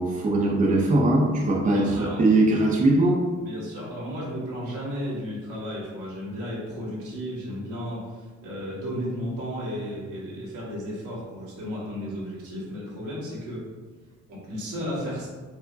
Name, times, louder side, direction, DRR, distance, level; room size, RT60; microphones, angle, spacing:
voice 1, 0.0-3.2, right 2 dB, 25° right, -1 dB, 0.6 m, -21 dB
voice 2, 1.7-2.2 3.4-8.0 8.4-13.6 14.4-15.3, equal, 90° right, -7 dB, 1.4 m, -33 dB
4.5 x 2.1 x 2.6 m, 1.4 s
cardioid pair, 90°, 30 cm